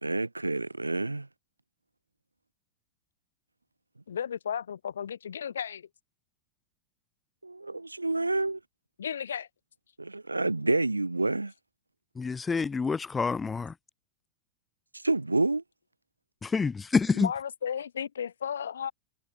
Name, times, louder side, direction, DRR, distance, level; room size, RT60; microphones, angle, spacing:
voice 1, 0.0-1.3 7.4-8.6 10.0-11.5 15.0-15.6, right 2 dB, 85° right, 0.6 m, -28 dB
voice 2, 4.1-5.9 9.0-9.5 17.1-18.9, left 8 dB, 65° left, 3.1 m, -34 dB
voice 3, 12.2-13.7 16.4-17.3, left 5 dB, 15° left, 0.9 m, -27 dB
figure-of-eight pair, 90°, 0 cm